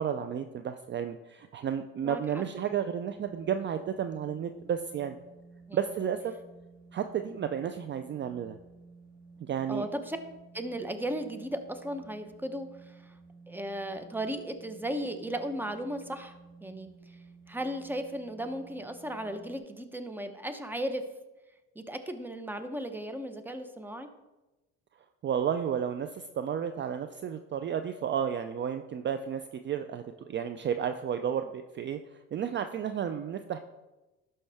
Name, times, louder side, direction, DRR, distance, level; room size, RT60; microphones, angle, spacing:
voice 1, 0.0-5.2 5.7-6.3 6.9-8.6 9.4-9.9 25.2-32.0 32.3-33.6, right 8 dB, 35° right, 9 dB, 0.5 m, -32 dB
voice 2, 2.0-2.4 5.7-5.8 9.7-10.2 10.5-13.1 13.5-17.2 17.5-21.0 21.7-24.1, right 1 dB, 5° right, 8 dB, 0.9 m, -36 dB
sound 1, 3.1-19.6, right 4 dB, 70° right, 2.3 m, -54 dB
12.0 x 5.5 x 3.5 m, 1.1 s
supercardioid pair, 90°, 31 cm